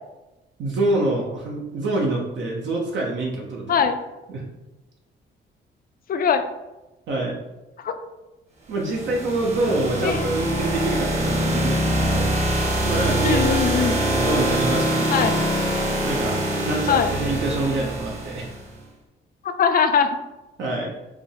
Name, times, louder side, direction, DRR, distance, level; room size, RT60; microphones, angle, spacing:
voice 1, 0.6-3.9 4.3-4.4 7.1-7.4 8.7-12.4 12.8-15.3 15.6-15.7 16.0-18.5 20.6-20.9, right 2 dB, 70° right, -1 dB, 0.7 m, -26 dB
voice 2, 3.7-4.0 6.1-6.5 7.8-8.0 10.0-10.3 13.2-14.0 15.1-15.4 16.9-17.1 19.4-20.2, left 7 dB, 45° left, 9 dB, 0.4 m, -21 dB
sound 1, 8.8-18.6, right 1 dB, 35° right, 1.1 m, -24 dB
5.0 x 2.3 x 3.3 m, 1.1 s
cardioid pair, 90°, 20 cm